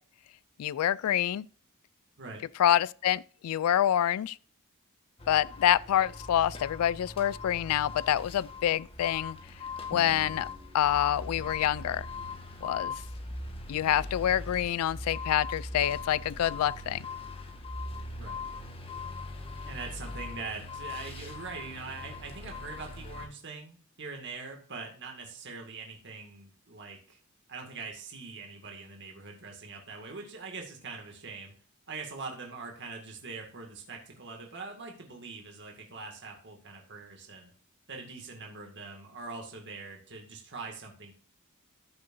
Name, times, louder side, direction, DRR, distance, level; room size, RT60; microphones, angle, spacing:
voice 1, 0.6-1.5 2.6-4.4 5.3-9.4 9.9-10.5 10.7-12.1 12.6-13.0 13.7-17.0, left 11 dB, 80° left, 0.3 m, -27 dB
sound 1, 5.2-23.3, left 3 dB, 25° left, 1.4 m, -40 dB
Drum, 9.9-11.6, equal, 15° right, 1.3 m, -49 dB
voice 2, 19.7-27.2 27.5-31.5 31.9-37.5 37.9-41.1, right 4 dB, 55° right, 2.1 m, -43 dB
14.0 x 6.7 x 2.6 m
head